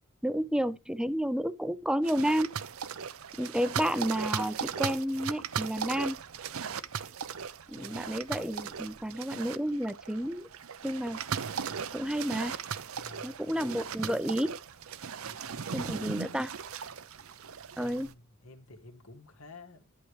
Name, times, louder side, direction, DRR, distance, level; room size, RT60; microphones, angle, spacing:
voice 1, 0.2-2.6 3.4-6.2 7.7-10.5 10.8-11.2 11.9-12.5 13.2-14.6 15.7-16.5 17.8-18.1, equal, 5° right, 0.5 m, -31 dB
sound 1, 2.0-18.1, right 7 dB, 70° right, 0.7 m, -38 dB
voice 2, 3.0-3.4 7.7-8.1 12.9-13.6 15.2-16.3 17.7-19.9, left 2 dB, 75° left, 2.1 m, -52 dB
11.5 x 6.8 x 3.2 m
head